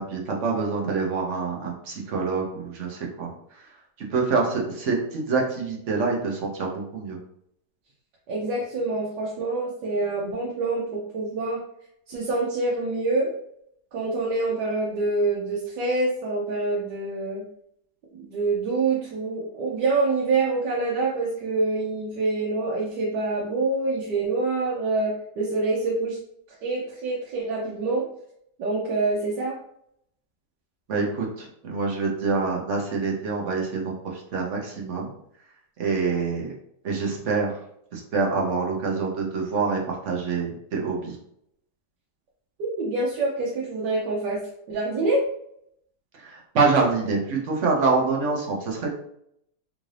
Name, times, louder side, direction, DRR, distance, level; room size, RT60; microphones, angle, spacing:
voice 1, 0.0-3.3 4.1-7.2 30.9-33.9 34.3-35.1 35.8-36.5 36.8-37.5 37.9-41.2 46.2-48.9, right 4 dB, 55° right, -1 dB, 0.9 m, -26 dB
voice 2, 8.3-11.6 12.1-13.3 13.9-17.4 18.1-26.2 26.6-28.1 28.6-29.6 42.6-44.4 44.7-45.3, right 3 dB, 75° right, -4 dB, 1.3 m, -26 dB
3.7 x 2.5 x 3.2 m, 0.72 s
omnidirectional pair, 1.9 m